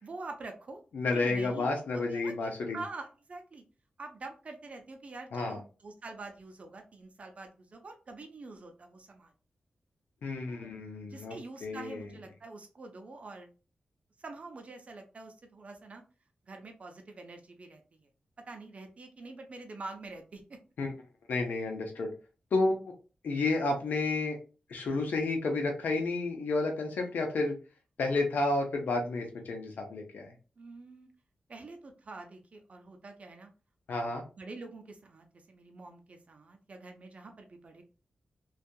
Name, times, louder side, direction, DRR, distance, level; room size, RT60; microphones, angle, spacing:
voice 1, 0.0-0.8 1.1-3.6 4.0-9.3 10.4-10.7 11.0-13.5 14.2-16.0 16.4-18.1 18.5-20.4 30.6-31.1 31.5-33.5 33.9-37.8, right 3 dB, 50° right, 4 dB, 0.6 m, -46 dB
voice 2, 0.9-2.8 5.3-5.6 10.2-11.4 11.6-12.0 20.8-20.9 21.3-22.1 22.5-22.8 23.2-24.4 24.7-27.6 28.0-30.3 33.9-34.2, left 3 dB, 90° left, 3 dB, 0.6 m, -31 dB
2.7 x 2.3 x 2.2 m, 0.34 s
wide cardioid pair, 90°, 3 cm